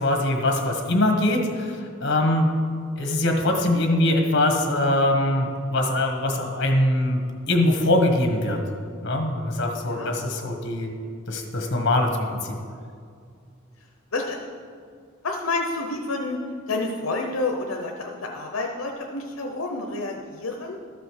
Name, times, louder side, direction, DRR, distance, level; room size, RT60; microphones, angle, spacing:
voice 1, 0.0-2.5 3.0-7.2 7.5-8.6 9.0-10.9 11.3-12.6, left 1 dB, 55° left, 3 dB, 1.5 m, -22 dB
voice 2, 9.8-10.1 14.1-14.5 15.2-16.4 16.7-20.8, left 3 dB, 80° left, 1 dB, 0.8 m, -29 dB
13.0 x 5.1 x 6.4 m, 2.2 s
head